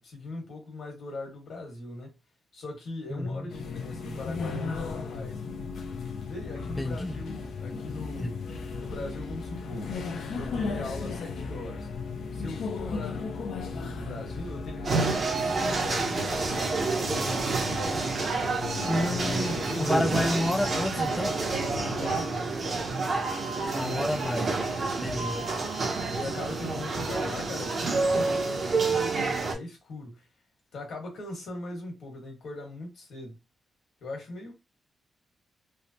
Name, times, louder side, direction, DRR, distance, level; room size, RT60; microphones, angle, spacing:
voice 1, 0.0-2.2 2.5-5.4 6.2-8.4 8.7-9.9 10.3-11.9 12.3-17.5 19.5-20.2 21.8-22.6 25.3-25.6 26.1-30.3 30.7-33.4 34.0-34.5, left 2 dB, 70° left, 1.4 m, -40 dB
voice 2, 3.1-3.5 6.8-7.2 8.2-8.3 18.9-21.3 23.7-24.6 25.0-25.4, left 1 dB, 10° left, 0.3 m, -29 dB
sound 1, 3.5-22.3, left 4 dB, 85° left, 0.5 m, -36 dB
sound 2, 14.8-29.5, right 3 dB, 40° right, 0.8 m, -28 dB
3.2 x 2.0 x 2.7 m
wide cardioid pair, 175°, 0 cm